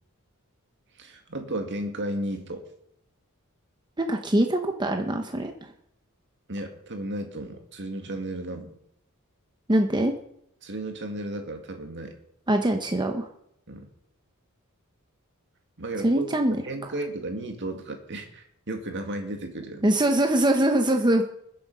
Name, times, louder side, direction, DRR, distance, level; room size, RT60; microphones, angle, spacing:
voice 1, 1.0-2.7 6.5-8.7 10.6-12.2 13.7-13.9 15.8-19.8, right 1 dB, 55° right, 5 dB, 2.2 m, -34 dB
voice 2, 4.0-5.7 9.7-10.1 12.5-13.3 16.0-16.6 16.8-16.9 19.8-21.2, right 1 dB, 20° right, 5 dB, 0.9 m, -23 dB
21.0 x 7.9 x 5.5 m, 0.76 s
head